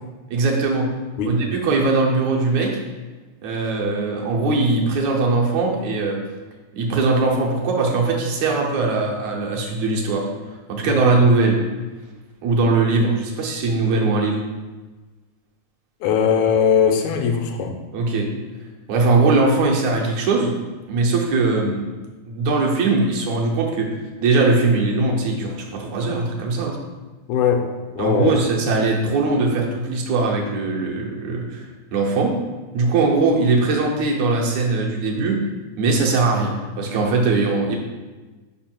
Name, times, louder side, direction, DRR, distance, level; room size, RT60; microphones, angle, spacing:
voice 1, 0.3-0.9 1.3-2.8 3.4-6.2 6.7-11.6 12.4-14.4 17.9-18.3 18.9-20.5 20.9-21.9 22.3-26.8 28.0-32.3 32.7-35.4 35.8-37.8, right 3 dB, 75° right, -1 dB, 2.3 m, -20 dB
voice 2, 16.0-17.8 27.3-27.7 28.0-28.3, left 7 dB, 85° left, 3 dB, 2.1 m, -19 dB
5.5 x 5.2 x 4.4 m, 1.3 s
omnidirectional pair, 3.4 m